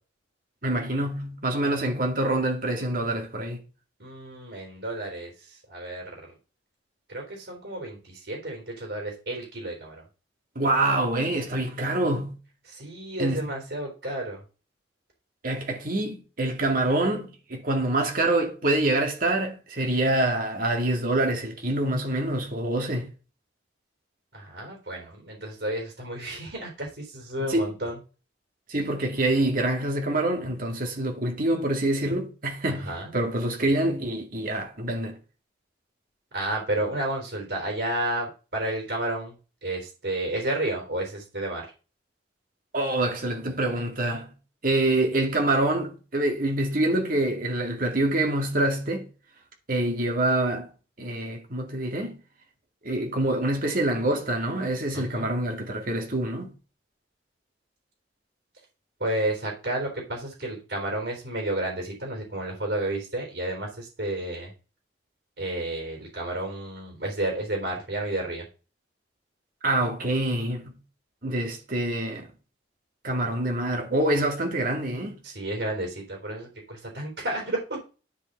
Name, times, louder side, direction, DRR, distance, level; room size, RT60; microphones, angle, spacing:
voice 1, 0.6-3.6 10.6-12.4 13.2-13.5 15.4-23.1 27.4-27.7 28.7-35.2 42.7-44.3 44.6-49.1 49.7-50.7 51.0-52.2 52.8-56.5 69.6-70.7 71.2-72.3 73.0-75.2, right 1 dB, 50° right, 2.2 m, -26 dB
voice 2, 4.0-6.1 7.1-10.1 12.7-14.4 24.3-28.0 32.7-33.1 36.3-39.3 39.6-41.7 54.9-55.3 59.0-64.5 65.4-68.4 75.2-77.6, right 1 dB, 65° right, 3.9 m, -31 dB
10.5 x 5.7 x 4.1 m
head